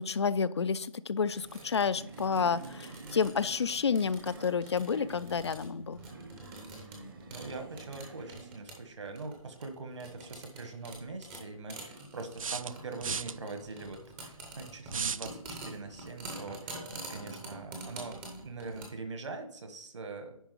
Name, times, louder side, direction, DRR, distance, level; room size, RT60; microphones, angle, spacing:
voice 1, 0.0-6.0, left 6 dB, 50° left, 16 dB, 0.4 m, -30 dB
sound 1, 1.3-18.9, right 2 dB, 5° right, 0.6 m, -47 dB
sound 2, 1.5-8.6, right 3 dB, 40° right, 1.0 m, -49 dB
voice 2, 7.3-20.5, right 3 dB, 55° right, 7 dB, 1.5 m, -43 dB
sound 3, 10.3-10.4 12.4-13.3 14.9-15.3, right 6 dB, 70° right, 0.4 m, -34 dB
10.0 x 3.6 x 5.2 m, 0.71 s
figure-of-eight pair, 160°, 18 cm